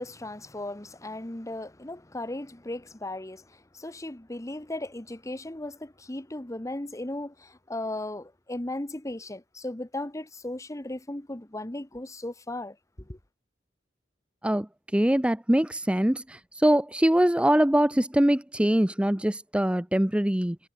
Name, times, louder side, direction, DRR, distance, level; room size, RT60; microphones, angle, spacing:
voice 1, 0.0-13.2, left 1 dB, 15° left, 1.1 m, -36 dB
voice 2, 14.4-20.6, right 1 dB, 5° right, 0.6 m, -23 dB
head